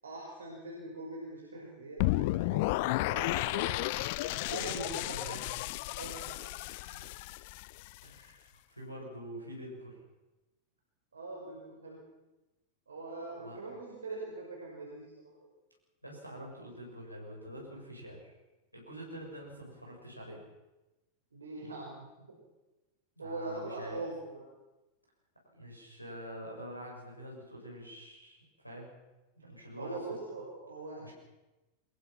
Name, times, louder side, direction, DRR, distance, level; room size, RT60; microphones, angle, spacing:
voice 1, 0.0-3.8 4.1-5.0 6.0-6.4 11.1-12.0 12.9-15.3 21.3-22.1 23.2-24.4 29.6-31.1, right 2 dB, 70° right, -2 dB, 5.5 m, -42 dB
sound 1, 2.0-8.0, left 19 dB, 50° left, 0.6 m, -33 dB
voice 2, 4.4-5.7 6.8-7.1 8.0-10.0 13.4-13.6 16.0-18.3 18.7-20.4 23.2-24.0 25.6-28.4 28.6-28.9 29.4-30.0 31.0-31.1, equal, 90° right, -2 dB, 7.5 m, -45 dB
24.0 x 21.5 x 5.8 m, 1.1 s
figure-of-eight pair, 90°, 0 cm